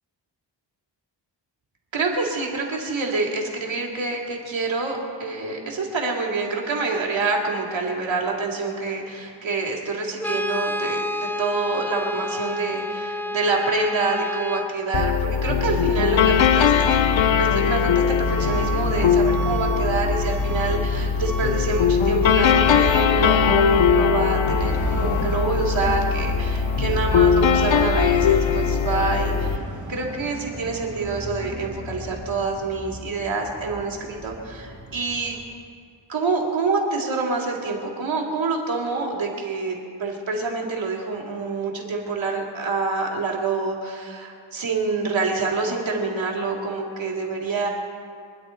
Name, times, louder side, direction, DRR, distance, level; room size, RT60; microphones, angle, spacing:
voice 1, 1.9-17.0 17.4-29.6 29.9-35.4 36.1-47.7, right 3 dB, 85° right, -1 dB, 2.8 m, -27 dB
Brass instrument, 10.2-14.8, left 1 dB, 5° left, 0.5 m, -29 dB
sound 1, 14.9-29.6, left 7 dB, 80° left, 0.7 m, -20 dB
Truck / Alarm, 18.2-35.4, right 2 dB, 40° right, 1.7 m, -34 dB
25.0 x 10.5 x 4.5 m, 2.3 s
wide cardioid pair, 140°, 45 cm